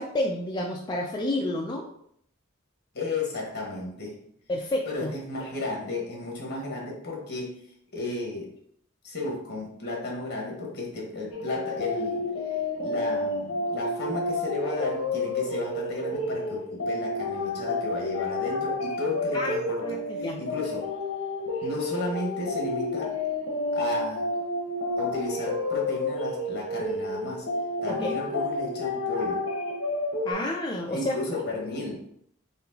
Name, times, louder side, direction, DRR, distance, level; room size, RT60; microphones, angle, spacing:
voice 1, 0.0-1.9 4.5-5.1 19.3-20.4 27.9-28.1 30.2-31.4, left 1 dB, 20° left, -1 dB, 0.4 m, -30 dB
voice 2, 2.9-4.2 4.9-7.6 7.9-8.5 9.0-12.2 12.8-20.9 21.6-23.2 23.7-24.3 25.0-27.5 27.8-29.4 30.9-31.9, left 2 dB, 55° left, -1 dB, 1.3 m, -33 dB
sound 1, 11.3-30.3, left 2 dB, 70° left, 0.8 m, -30 dB
4.2 x 3.8 x 2.8 m, 0.69 s
head